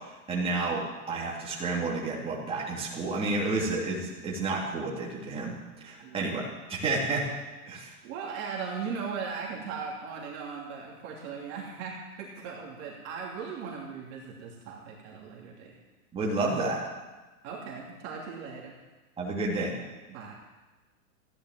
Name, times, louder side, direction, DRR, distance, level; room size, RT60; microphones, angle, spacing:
voice 1, 0.3-5.5 5.8-7.2 7.7-7.9 16.1-16.8 19.2-19.7, right 3 dB, 10° right, -5 dB, 3.4 m, -30 dB
voice 2, 6.0-6.3 8.0-15.7 17.4-18.7 20.1-20.3, right 5 dB, 35° right, -2 dB, 2.8 m, -38 dB
15.0 x 10.5 x 7.7 m, 1.2 s
hypercardioid pair, 150°, 45 cm